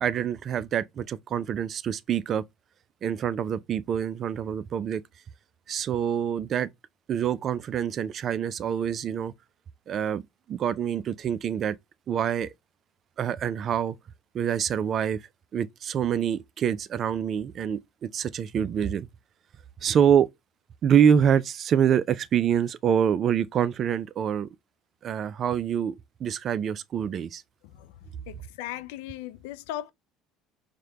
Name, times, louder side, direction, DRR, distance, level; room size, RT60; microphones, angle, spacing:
voice 1, 0.0-2.4 3.0-5.0 5.7-6.7 7.1-9.3 9.9-10.2 10.5-11.8 12.1-12.5 13.2-13.9 14.3-15.2 15.5-17.8 18.1-19.1 19.8-20.3 20.8-24.5 25.0-26.0 26.2-27.4, right 8 dB, 50° right, 0.4 m, -25 dB
voice 2, 28.3-29.9, left 13 dB, 80° left, 0.3 m, -37 dB
4.8 x 2.2 x 2.8 m
hypercardioid pair, 75°, 0 cm